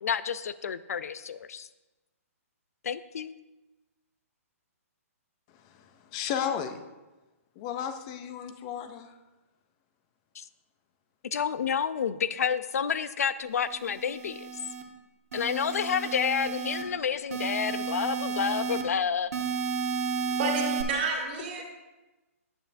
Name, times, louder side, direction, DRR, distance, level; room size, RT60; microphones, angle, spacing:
voice 1, 0.0-1.7 2.8-3.3 10.4-10.5 11.3-14.5 15.3-19.3 20.2-20.3, left 7 dB, 80° left, 15 dB, 0.5 m, -29 dB
voice 2, 5.6-6.8 7.6-9.1, left 8 dB, 20° left, 8 dB, 0.5 m, -34 dB
sound 1, 13.7-14.8 15.3-16.8 17.3-18.8 19.3-20.8, right 5 dB, 75° right, 1.2 m, -32 dB
voice 3, 20.4-21.6, right 3 dB, 35° right, -2 dB, 2.0 m, -30 dB
9.2 x 8.8 x 2.6 m, 1.1 s
hypercardioid pair, 170°, 8 cm